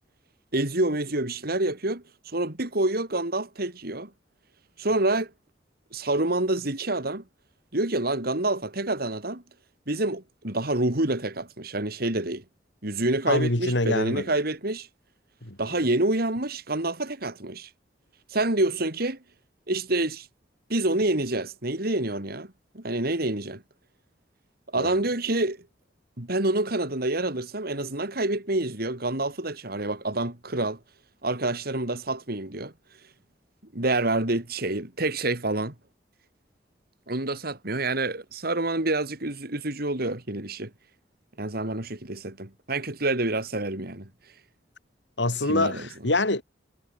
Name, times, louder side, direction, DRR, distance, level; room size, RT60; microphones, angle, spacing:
voice 1, 0.5-4.1 4.8-5.3 5.9-7.2 7.7-9.4 9.9-12.4 12.8-14.9 15.6-17.7 18.3-19.2 19.7-20.3 20.7-23.6 24.7-25.6 26.2-30.8 31.2-32.7 33.7-35.7 37.1-40.7 41.4-44.1 45.5-45.9, right 2 dB, 60° right, 3.6 m, -27 dB
voice 2, 13.3-14.3 15.4-15.6 24.8-25.0 45.2-46.4, left 2 dB, 90° left, 4.5 m, -25 dB
head